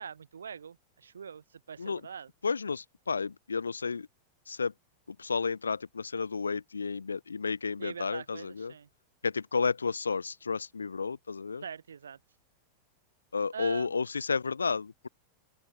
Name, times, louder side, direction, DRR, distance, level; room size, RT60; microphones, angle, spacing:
voice 1, 0.0-2.3 7.8-8.9 11.6-12.2 13.5-14.0, right 7 dB, 70° right, 3.0 m, -43 dB
voice 2, 2.4-4.1 4.5-4.7 5.2-8.7 9.2-11.6 13.3-15.1, left 5 dB, 75° left, 1.1 m, -32 dB
open air
figure-of-eight pair, 90°, 0 cm